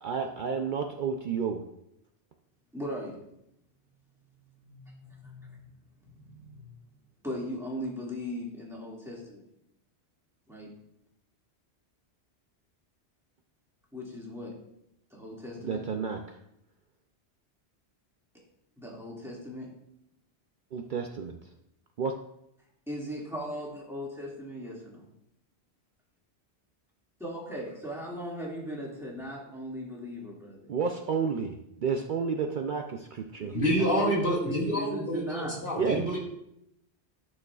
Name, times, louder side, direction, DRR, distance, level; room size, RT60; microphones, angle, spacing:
voice 1, 0.0-1.6 15.6-16.2 20.7-21.4 22.0-22.1 30.7-33.6 35.8-36.0, right 5 dB, 55° right, 3 dB, 0.6 m, -31 dB
voice 2, 2.7-3.2 4.6-5.7 6.0-6.6 7.2-9.4 10.5-10.7 13.9-14.5 15.1-15.8 18.8-19.7 22.9-25.0 27.2-30.7 33.4-35.6, equal, ahead, -5 dB, 2.0 m, -38 dB
voice 3, 33.5-36.2, equal, 55° left, -4 dB, 2.2 m, -28 dB
11.0 x 6.4 x 2.4 m, 0.80 s
omnidirectional pair, 1.1 m